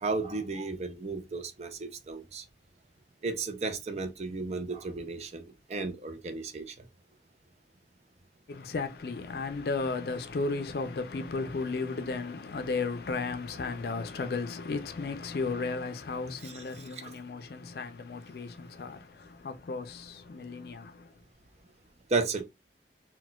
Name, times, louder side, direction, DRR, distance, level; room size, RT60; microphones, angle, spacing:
voice 1, 0.0-2.4 3.2-6.9 16.4-17.1 22.1-22.4, right 3 dB, 35° right, 0.4 m, -34 dB
voice 2, 8.5-21.1, left 3 dB, 60° left, 0.4 m, -34 dB
4.1 x 2.2 x 2.2 m
head